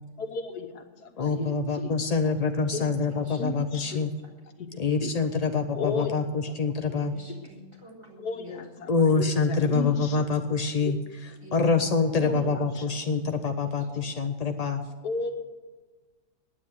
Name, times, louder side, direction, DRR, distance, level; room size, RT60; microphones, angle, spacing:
voice 1, 0.2-1.9 2.7-2.8 3.1-4.0 4.6-4.7 5.0-5.1 5.7-6.2 8.2-10.3 10.8-10.9 12.2-12.9 15.0-15.3, left 5 dB, 80° left, 6 dB, 1.7 m, -34 dB
voice 2, 1.2-4.1 4.8-7.1 8.9-11.0 11.2-14.9, left 4 dB, 60° left, 6 dB, 0.4 m, -26 dB
voice 3, 7.0-8.9 11.4-11.7, equal, 20° right, -3 dB, 3.6 m, -48 dB
9.9 x 9.7 x 9.5 m, 1.3 s
omnidirectional pair, 1.7 m